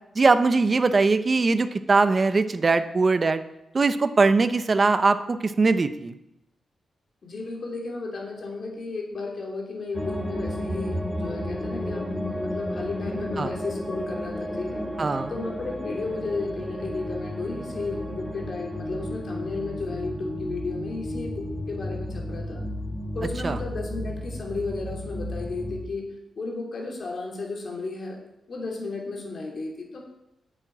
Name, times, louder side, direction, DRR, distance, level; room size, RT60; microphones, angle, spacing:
voice 1, 0.2-3.4 3.7-6.1 13.4-13.5 15.0-15.3 23.4-23.6, right 3 dB, 30° right, 11 dB, 0.7 m, -21 dB
voice 2, 7.2-14.8 15.3-22.6 23.1-26.1 26.4-28.2 28.5-30.0, left 3 dB, 45° left, 1 dB, 2.9 m, -33 dB
sound 1, 9.9-25.8, left 1 dB, 5° left, 1.7 m, -33 dB
10.0 x 7.6 x 9.0 m, 0.89 s
wide cardioid pair, 130°, 0 cm